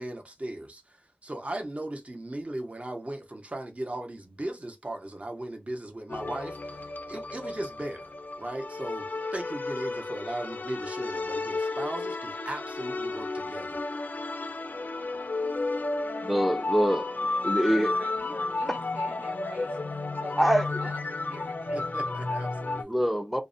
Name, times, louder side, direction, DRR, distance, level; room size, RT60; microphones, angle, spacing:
voice 1, 0.0-8.1 8.4-9.1 9.3-13.8 21.7-23.1, right 1 dB, 45° right, 0.7 m, -37 dB
sound 1, 6.1-22.8, left 3 dB, 85° left, 0.3 m, -32 dB
voice 2, 16.2-17.1 17.4-17.9 20.4-20.7 22.9-23.4, equal, ahead, 0.5 m, -24 dB
voice 3, 17.5-22.5, equal, 90° right, 1.0 m, -45 dB
2.6 x 2.0 x 2.5 m
wide cardioid pair, 40°, 3 cm